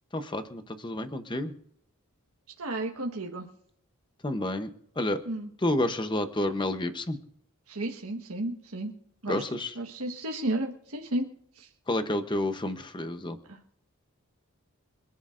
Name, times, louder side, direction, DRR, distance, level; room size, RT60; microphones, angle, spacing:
voice 1, 0.1-1.5 4.2-4.7 5.0-5.2 5.6-7.2 9.3-9.7 11.9-13.4, left 1 dB, 20° left, 8 dB, 0.8 m, -29 dB
voice 2, 2.6-3.5 5.3-5.5 7.7-8.9 9.2-9.4 9.8-11.3 11.6-11.7 13.5-13.6, right 1 dB, 80° right, 1 dB, 1.4 m, -33 dB
26.0 x 11.0 x 2.6 m, 0.69 s
head